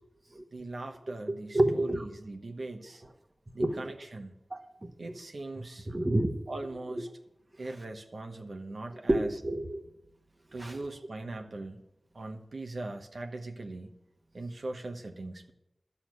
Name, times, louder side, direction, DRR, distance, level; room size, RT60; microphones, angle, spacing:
voice 1, 0.5-3.0 3.5-4.3 5.0-5.9 6.5-7.1 7.6-9.3 10.5-11.8 12.1-13.9 14.3-15.5, right 2 dB, 75° right, 5 dB, 1.1 m, -40 dB
voice 2, 1.3-2.1 3.6-3.7 4.5-4.9 5.9-6.4 9.1-9.8 10.6-10.8, right 1 dB, 40° right, 8 dB, 1.3 m, -28 dB
11.5 x 7.0 x 9.4 m, 0.85 s
cardioid pair, 45°, 0 cm